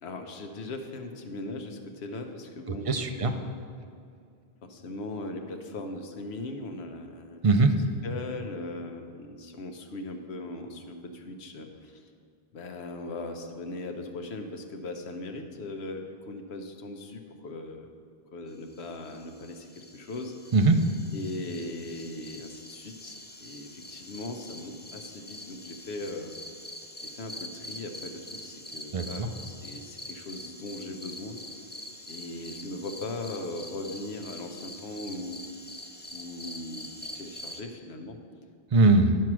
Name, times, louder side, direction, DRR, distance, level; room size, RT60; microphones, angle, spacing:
voice 1, 0.0-3.6 4.6-7.4 8.0-12.1 12.5-17.9 18.3-20.4 21.1-26.3 27.0-31.4 32.1-35.4 36.1-38.2, left 2 dB, 85° left, 4 dB, 1.1 m, -39 dB
voice 2, 2.7-3.3 7.4-7.8 20.5-20.8 28.9-29.3 38.7-39.2, right 3 dB, 45° right, 6 dB, 0.4 m, -21 dB
sound 1, 18.7-37.6, left 1 dB, 15° left, 0.3 m, -45 dB
10.5 x 4.6 x 6.1 m, 2.2 s
omnidirectional pair, 1.1 m